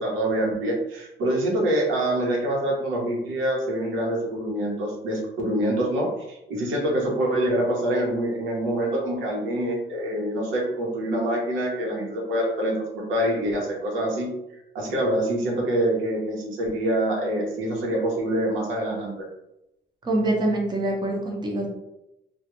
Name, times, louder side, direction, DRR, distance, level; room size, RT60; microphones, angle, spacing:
voice 1, 0.0-14.3 14.7-19.3, right 1 dB, 85° right, -2 dB, 0.8 m, -25 dB
voice 2, 20.0-21.7, right 1 dB, 20° right, -1 dB, 0.6 m, -25 dB
2.3 x 2.1 x 2.9 m, 0.88 s
cardioid pair, 90°, 20 cm